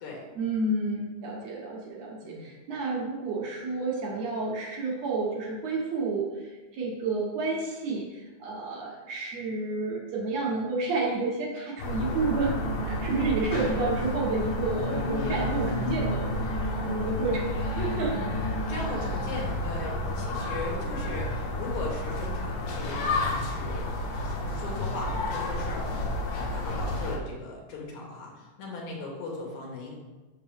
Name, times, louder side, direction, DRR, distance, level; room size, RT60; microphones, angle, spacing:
voice 1, 0.4-12.5 12.8-16.4 16.8-18.2, right 3 dB, 65° right, -2 dB, 1.9 m, -30 dB
voice 2, 2.2-2.6 18.1-18.3 18.7-23.8 24.2-30.0, left 2 dB, 75° left, -2 dB, 2.5 m, -38 dB
sound 1, 11.8-27.2, left 2 dB, 90° left, 2.4 m, -31 dB
sound 2, 12.6-19.0, right 3 dB, 85° right, 2.2 m, -36 dB
6.3 x 5.4 x 3.4 m, 1.2 s
omnidirectional pair, 3.6 m